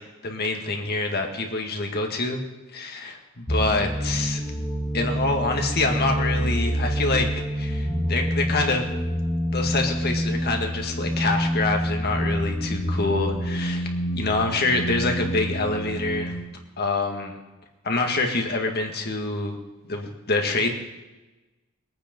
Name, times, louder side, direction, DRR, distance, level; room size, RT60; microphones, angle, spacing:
voice 1, 0.2-2.4 2.7-4.4 4.9-7.3 7.6-8.9 9.5-13.9 14.1-16.3 16.8-17.3 17.8-19.6 19.9-20.7, left 3 dB, 50° left, 2 dB, 2.0 m, -26 dB
sound 1, 3.5-16.4, equal, 15° left, 1.6 m, -27 dB
21.5 x 9.1 x 5.4 m, 1.1 s
head